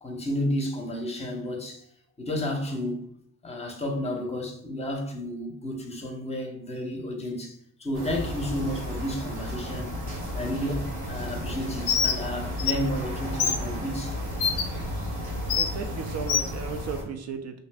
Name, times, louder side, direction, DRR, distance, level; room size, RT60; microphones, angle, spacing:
voice 1, 0.0-1.9 2.2-3.1 3.4-9.9 10.3-14.2, left 1 dB, 20° left, 0.7 m, -32 dB
sound 1, 7.9-17.0, equal, 85° right, 1.4 m, -33 dB
Bird, 11.9-12.2 12.6-12.7 13.4-13.6 14.4-14.6 15.5-15.7 16.3-16.5, left 7 dB, 75° left, 0.5 m, -24 dB
voice 2, 15.6-17.6, right 5 dB, 60° right, 0.5 m, -35 dB
2.6 x 2.0 x 3.2 m
cardioid pair, 90°, 30 cm